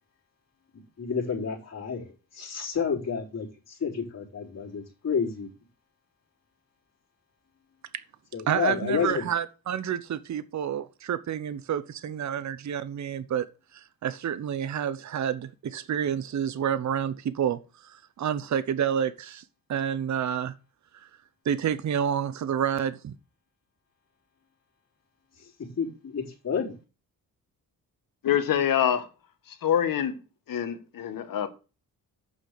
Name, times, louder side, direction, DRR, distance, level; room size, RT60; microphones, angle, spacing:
voice 1, 1.0-5.5 8.3-9.3 25.6-26.7, left 6 dB, 45° left, 4.1 m, -30 dB
voice 2, 8.5-13.5 13.7-19.4 19.7-20.5 20.9-21.1 21.4-23.1, right 9 dB, 50° right, 0.9 m, -29 dB
voice 3, 28.2-29.1 29.6-30.2 30.5-31.5, left 9 dB, 70° left, 1.7 m, -25 dB
8.8 x 5.8 x 6.6 m
cardioid pair, 95°, 35 cm